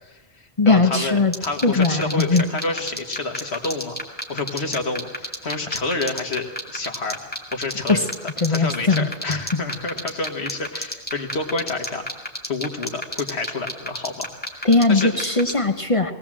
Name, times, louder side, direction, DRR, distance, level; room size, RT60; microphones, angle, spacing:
voice 1, 0.0-4.0 4.3-7.2 7.5-8.1 8.5-12.0 12.4-14.3 14.6-15.1, left 3 dB, 75° left, 3 dB, 2.0 m, -29 dB
voice 2, 0.6-1.3 1.6-2.4 7.9-8.1 8.4-9.6 14.6-16.1, left 3 dB, 30° left, 7 dB, 0.9 m, -19 dB
sound 1, 1.3-15.5, equal, 10° left, 2.4 m, -28 dB
20.5 x 17.5 x 7.6 m, 1.2 s
omnidirectional pair, 1.1 m